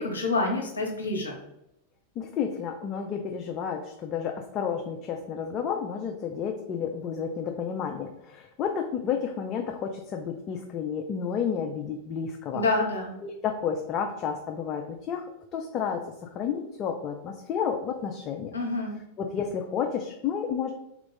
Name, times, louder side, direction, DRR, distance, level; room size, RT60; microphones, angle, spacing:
voice 1, 0.0-1.4 12.5-13.2 18.5-19.0, left 2 dB, 75° left, 0 dB, 0.8 m, -27 dB
voice 2, 2.2-12.7 13.2-18.5 19.2-20.7, left 7 dB, 35° left, 4 dB, 0.4 m, -31 dB
3.7 x 2.3 x 3.7 m, 0.85 s
figure-of-eight pair, 90°, 0 cm